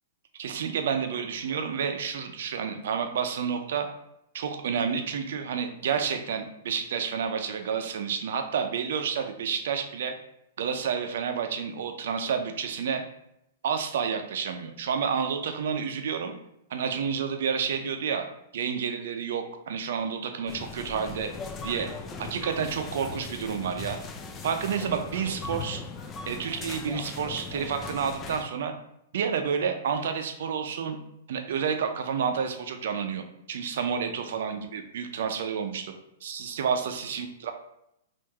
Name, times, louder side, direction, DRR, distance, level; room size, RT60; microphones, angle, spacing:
voice 1, 0.4-3.9 4.3-10.1 10.6-13.0 13.6-16.4 16.7-18.2 18.5-21.3 21.6-21.9 22.2-24.0 24.4-25.8 26.3-28.7 29.1-31.0 31.3-35.9 36.2-37.5, right 6 dB, 70° right, 6 dB, 0.5 m, -30 dB
sound 1, 20.5-28.4, left 4 dB, 25° left, 0.4 m, -39 dB
3.6 x 2.5 x 2.9 m, 0.79 s
hypercardioid pair, 125°, 0 cm